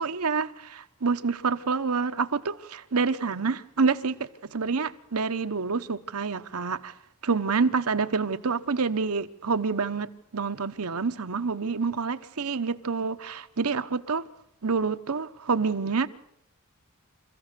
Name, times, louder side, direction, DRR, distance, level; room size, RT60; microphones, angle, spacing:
voice 1, 0.0-6.9 7.2-14.2 14.6-16.1, right 4 dB, 80° right, 1.0 m, -27 dB
28.5 x 15.0 x 6.8 m
head